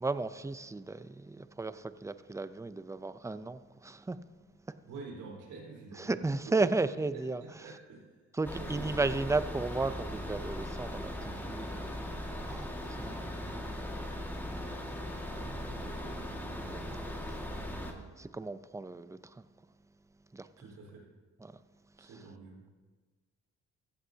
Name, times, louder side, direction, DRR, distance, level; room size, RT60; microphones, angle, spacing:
voice 1, 0.0-4.2 4.7-4.8 6.0-7.4 8.3-12.0 12.5-14.5 14.8-15.8 16.7-17.5 18.2-19.5 20.3-20.5 21.4-21.5 22.0-22.1, right 3 dB, 10° right, 0.5 m, -35 dB
voice 2, 4.8-6.5 7.1-8.1 8.6-9.1 15.7-16.2 20.6-21.1 22.0-22.7, right 4 dB, 85° right, 4.4 m, -48 dB
sound 1, 8.4-17.9, left 1 dB, 5° left, 1.9 m, -39 dB
16.0 x 14.5 x 2.8 m
cardioid pair, 90°, 30 cm